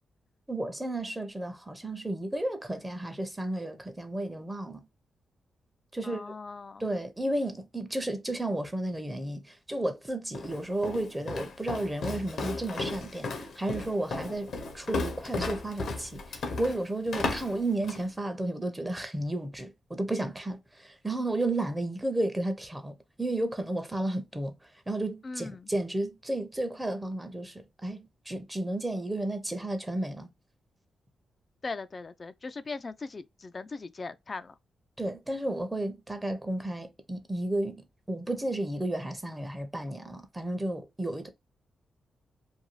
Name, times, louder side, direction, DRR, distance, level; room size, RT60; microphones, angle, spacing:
voice 1, 0.5-4.8 5.9-6.2 6.8-13.3 13.6-14.5 14.7-24.5 24.9-30.3 35.0-41.3, right 1 dB, 15° right, 0.6 m, -32 dB
voice 2, 6.0-6.9 25.2-25.7 31.6-34.6, left 3 dB, 40° left, 0.3 m, -39 dB
Walk footsteps, 10.3-18.1, left 3 dB, 70° left, 0.7 m, -35 dB
2.6 x 2.2 x 3.0 m
cardioid pair, 65°, 0 cm